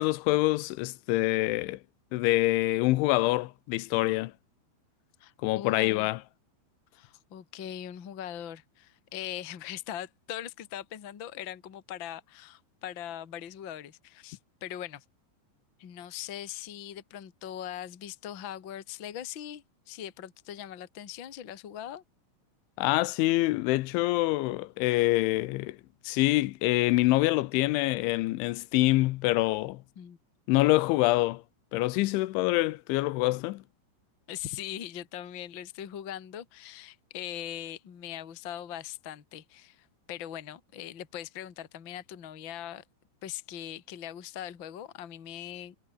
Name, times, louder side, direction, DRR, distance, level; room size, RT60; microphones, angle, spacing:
voice 1, 0.0-1.8 2.1-4.3 5.4-6.2 22.8-25.8 26.0-29.8 30.5-31.4 31.7-33.6, left 19 dB, 85° left, 3.2 m, -25 dB
voice 2, 5.2-6.1 6.9-15.0 15.8-22.0 29.9-30.2 34.3-42.8 43.2-45.8, left 11 dB, 50° left, 1.5 m, -41 dB
omnidirectional pair, 5.4 m